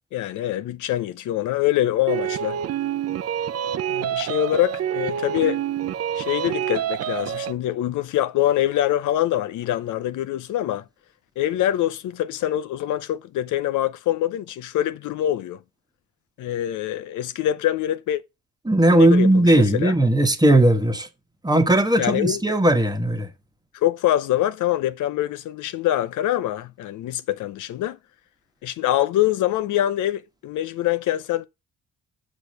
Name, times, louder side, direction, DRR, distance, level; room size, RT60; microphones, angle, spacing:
voice 1, 0.1-2.6 3.9-5.6 6.2-10.8 11.4-15.6 16.4-18.2 18.9-19.5 19.7-19.9 22.0-22.4 23.7-28.0 28.6-31.5, left 13 dB, 80° left, 0.6 m, -24 dB
sound 1, 2.1-7.5, right 10 dB, 50° right, 0.6 m, -27 dB
voice 2, 18.6-21.1 21.4-23.3, right 1 dB, 15° right, 1.3 m, -17 dB
6.3 x 4.9 x 6.5 m
cardioid pair, 90°, 30 cm